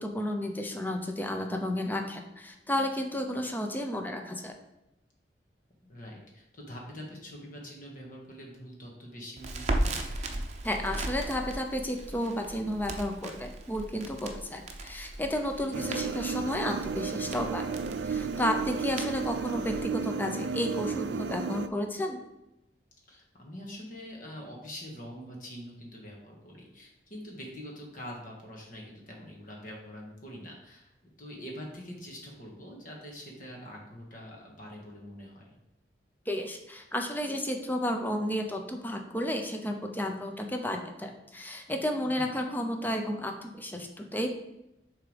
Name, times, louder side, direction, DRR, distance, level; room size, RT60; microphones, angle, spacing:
voice 1, 0.0-4.5 10.6-17.6 18.0-22.2 36.3-44.3, left 1 dB, 10° left, 4 dB, 0.7 m, -32 dB
voice 2, 5.8-10.0 15.7-16.0 23.1-30.9 31.2-35.6 42.1-42.3, equal, 50° left, -2 dB, 1.7 m, -44 dB
Crackle, 9.4-19.8, right 1 dB, 40° right, 0.7 m, -37 dB
sound 1, 15.7-21.7, right 5 dB, 80° right, 0.4 m, -33 dB
6.5 x 3.7 x 5.1 m, 0.88 s
head